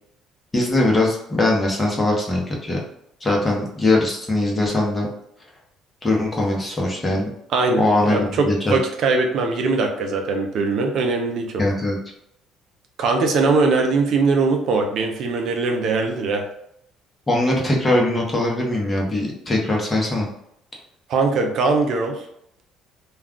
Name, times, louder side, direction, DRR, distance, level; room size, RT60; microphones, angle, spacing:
voice 1, 0.5-2.8 3.2-5.1 6.0-7.3 7.8-8.8 11.6-12.0 17.3-20.3, left 2 dB, 20° left, -2 dB, 0.8 m, -21 dB
voice 2, 7.5-11.6 13.0-16.4 21.1-22.3, right 3 dB, 60° right, 3 dB, 0.5 m, -21 dB
2.3 x 2.3 x 3.6 m, 0.75 s
cardioid pair, 120°, 0 cm